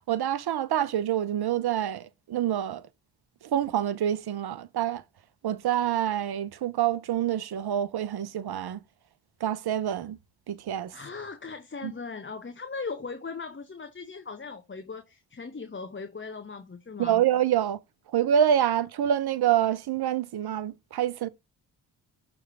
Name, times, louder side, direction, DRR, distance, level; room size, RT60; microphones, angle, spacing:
voice 1, 0.1-2.8 3.4-5.0 5.4-8.8 9.4-10.2 10.5-10.9 11.8-11.9 17.0-17.8 18.1-21.3, right 10 dB, 55° right, 0.9 m, -26 dB
voice 2, 10.9-17.2, left 4 dB, 25° left, 1.1 m, -39 dB
6.4 x 3.6 x 4.9 m
hypercardioid pair, 45°, 46 cm